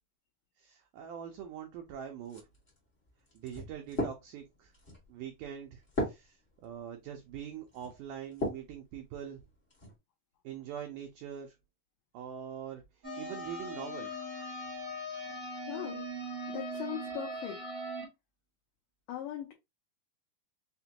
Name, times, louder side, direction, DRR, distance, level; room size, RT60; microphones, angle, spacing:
voice 1, 0.6-2.4 3.3-4.7 5.1-9.4 10.4-11.6 12.1-14.2, right 9 dB, 85° right, 1.8 m, -43 dB
sound 1, 2.2-8.7 9.3-9.9, equal, 40° left, 0.7 m, -39 dB
sound 2, 13.0-18.0, equal, 55° right, 0.6 m, -40 dB
voice 2, 15.7-16.1 16.5-17.6 19.1-19.5, left 11 dB, 75° left, 2.1 m, -39 dB
5.8 x 2.2 x 2.8 m
omnidirectional pair, 4.3 m